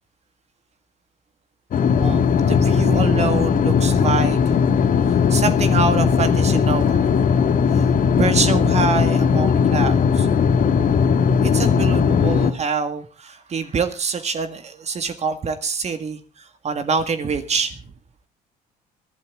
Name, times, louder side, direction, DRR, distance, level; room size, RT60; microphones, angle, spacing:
sound 1, 1.7-12.5, left 6 dB, 55° left, 1.9 m, -18 dB
voice 1, 2.0-4.5 5.1-7.3 7.7-7.8 8.2-10.3 11.4-17.8, right 5 dB, 40° right, 1.8 m, -25 dB
22.5 x 12.0 x 3.7 m
cardioid pair, 110°, 17 cm